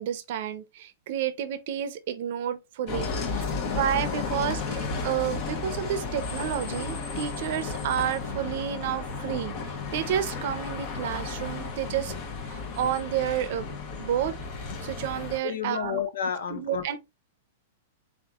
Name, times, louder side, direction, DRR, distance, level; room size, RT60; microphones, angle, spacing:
voice 1, 0.0-9.5 9.9-12.1 12.4-13.7 14.0-16.0 16.5-17.0, right 10 dB, 60° right, 0.6 m, -30 dB
Bus, 2.9-15.4, left 4 dB, 45° left, 0.9 m, -33 dB
voice 2, 15.4-17.0, left 7 dB, 75° left, 0.8 m, -31 dB
3.7 x 3.6 x 2.4 m
hypercardioid pair, 120°, 0 cm